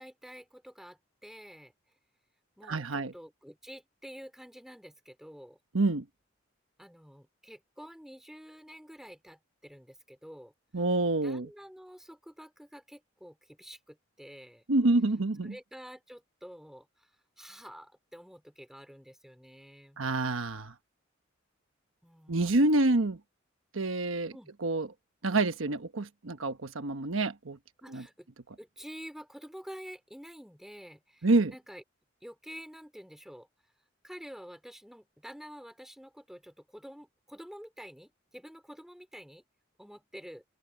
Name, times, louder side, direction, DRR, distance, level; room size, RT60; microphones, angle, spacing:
voice 1, 0.0-1.7 2.6-5.6 6.8-10.5 11.2-14.6 15.4-17.1 17.4-20.0 22.0-22.7 24.3-24.5 27.8-28.3 28.6-31.8 32.2-33.5 34.0-39.4 39.8-40.4, equal, ahead, 3.2 m, -49 dB
voice 2, 2.7-3.1 5.7-6.0 10.7-11.5 14.7-15.5 20.0-20.7 22.3-23.2 23.7-24.3 24.6-24.9 25.2-27.6 27.9-28.0 31.2-31.5, right 2 dB, 80° right, 1.2 m, -27 dB
open air
head